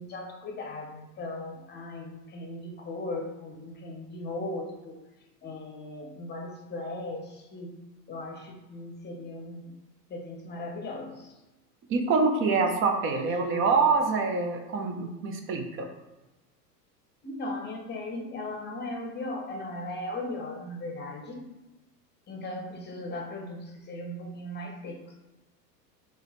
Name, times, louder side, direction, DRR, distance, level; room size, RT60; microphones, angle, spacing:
voice 1, 0.0-4.9 5.4-7.7 8.1-9.7 10.1-11.2 17.2-21.4 22.3-25.0, left 2 dB, 20° left, 2 dB, 0.8 m, -37 dB
voice 2, 11.9-15.9, right 4 dB, 25° right, 4 dB, 0.5 m, -25 dB
3.8 x 2.9 x 3.0 m, 1.0 s
hypercardioid pair, 90°, 49 cm